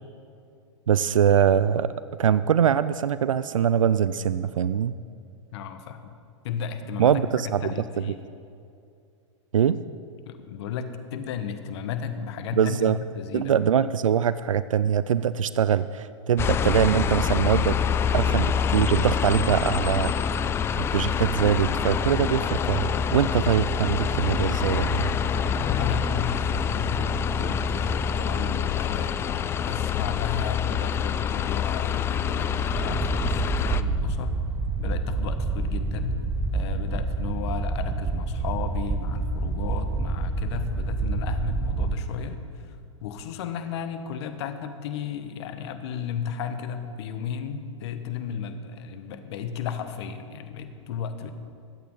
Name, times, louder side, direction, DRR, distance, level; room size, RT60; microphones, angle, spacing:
voice 1, 0.9-1.9 2.2-4.9 7.0-8.1 9.5-9.8 12.6-13.0 13.3-17.8 18.1-20.1 20.8-25.1, right 8 dB, 90° right, 15 dB, 0.4 m, -23 dB
voice 2, 5.5-6.1 6.4-7.2 7.6-8.2 10.3-13.6 25.6-34.4 34.8-36.2 36.5-42.7 43.0-51.3, left 7 dB, 55° left, 9 dB, 1.2 m, -34 dB
sound 1, 16.4-33.8, left 7 dB, 15° left, 0.3 m, -26 dB
sound 2, 32.7-41.9, right 3 dB, 10° right, 0.8 m, -28 dB
21.0 x 8.7 x 3.9 m, 2.5 s
hypercardioid pair, 120°, 16 cm